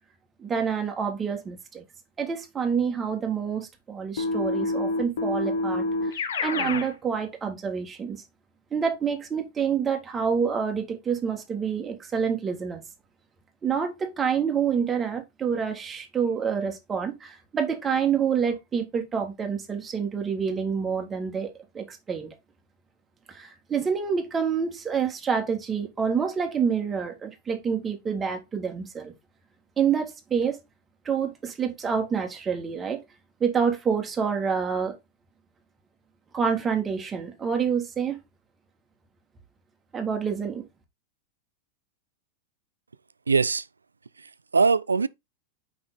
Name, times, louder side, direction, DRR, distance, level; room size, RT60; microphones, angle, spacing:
voice 1, 0.4-1.8 2.2-8.2 8.7-12.8 13.6-22.3 23.3-29.1 29.8-30.6 31.0-33.0 33.4-35.0 36.3-38.2 39.9-40.6, right 6 dB, 20° right, 1.6 m, -27 dB
Keyboard (musical), 4.2-6.9, left 2 dB, 65° left, 1.1 m, -27 dB
voice 2, 43.3-43.7 44.2-45.1, right 4 dB, 75° right, 0.3 m, -22 dB
6.1 x 5.1 x 3.8 m
figure-of-eight pair, 90°, 0 cm